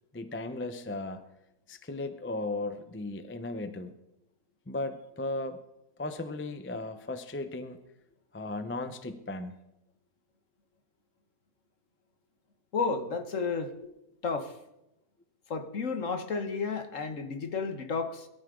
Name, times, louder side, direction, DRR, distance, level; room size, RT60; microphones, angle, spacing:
voice 1, 0.1-1.2 1.7-3.9 4.7-5.6 6.0-7.8 8.3-9.5, left 2 dB, 10° left, 9 dB, 0.6 m, -36 dB
voice 2, 12.7-13.7 14.2-14.5 15.5-18.3, left 4 dB, 55° left, 7 dB, 1.6 m, -32 dB
22.5 x 13.0 x 3.8 m, 0.89 s
omnidirectional pair, 1.6 m